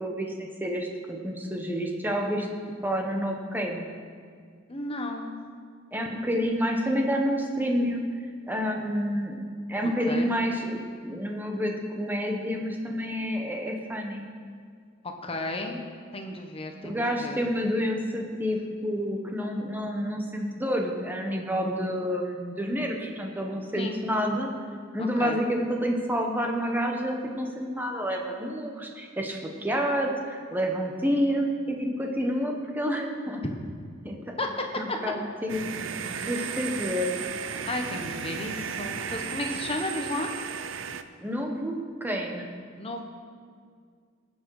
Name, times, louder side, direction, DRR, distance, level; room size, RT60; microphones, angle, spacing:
voice 1, 0.0-2.5 2.8-3.9 5.9-8.1 8.5-9.4 9.7-14.3 16.8-24.5 24.9-33.4 34.0-34.2 34.8-35.6 36.1-37.1 41.2-42.5, equal, 10° right, 1 dB, 1.2 m, -29 dB
voice 2, 4.7-5.4 10.1-10.3 15.2-15.9 16.1-17.4 23.8-24.0 25.2-25.4 34.4-34.5 34.9-35.0 36.1-36.3 37.7-40.3 42.8-43.0, left 2 dB, 30° left, 3 dB, 1.1 m, -33 dB
sound 1, 35.5-41.0, right 7 dB, 70° right, 0.6 m, -34 dB
18.0 x 7.4 x 4.9 m, 2.1 s
head